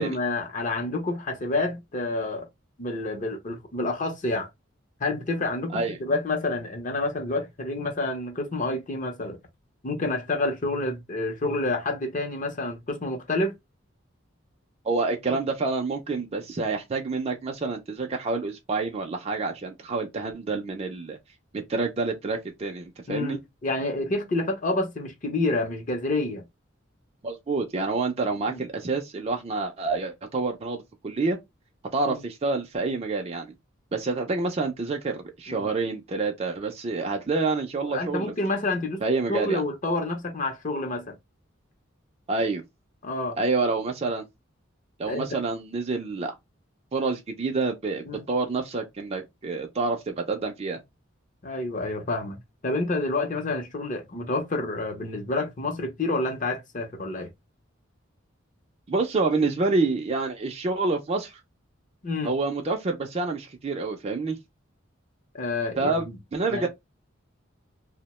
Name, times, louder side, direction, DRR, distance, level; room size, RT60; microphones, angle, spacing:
voice 1, 0.0-2.5 2.8-4.5 5.0-9.4 9.8-13.5 23.1-26.4 28.5-28.6 32.0-32.1 35.5-35.7 37.9-39.0 39.3-41.1 43.0-43.4 45.1-45.3 48.0-48.2 51.4-57.3 62.0-62.3 65.3-66.1 66.5-66.7, left 2 dB, 40° left, 0.6 m, -28 dB
voice 2, 14.8-21.2 21.5-23.4 27.2-31.4 31.9-33.5 33.9-38.3 39.0-39.6 42.3-42.6 43.4-44.3 45.0-46.3 46.9-50.8 58.9-61.4 62.2-64.4 65.8-66.0 66.3-66.7, right 3 dB, 30° right, 0.4 m, -28 dB
2.7 x 2.1 x 2.9 m
head